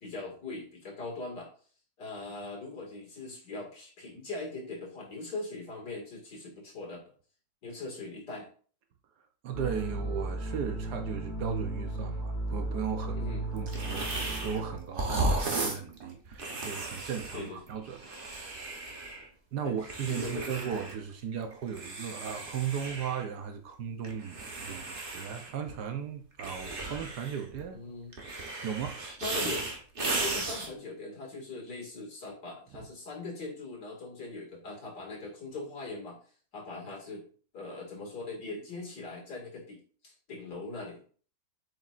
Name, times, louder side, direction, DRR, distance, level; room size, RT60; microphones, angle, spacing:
voice 1, 0.0-1.5 2.0-7.1 7.6-8.5 13.1-13.4 17.3-17.6 19.6-20.6 27.7-28.1 29.2-36.2 36.5-37.2 37.5-41.0, left 3 dB, 65° left, 2.8 m, -41 dB
voice 2, 9.4-18.2 18.4-18.7 19.5-27.8 28.6-29.0, right 7 dB, 70° right, 1.3 m, -36 dB
sound 1, 9.5-14.8, right 2 dB, 25° left, 1.4 m, -35 dB
sound 2, 13.7-14.6 14.9-19.3 19.8-21.0 21.3-23.2 24.0-25.8 26.4-27.6 28.1-30.7, right 2 dB, 35° right, 1.0 m, -35 dB
7.6 x 5.2 x 2.5 m
omnidirectional pair, 2.0 m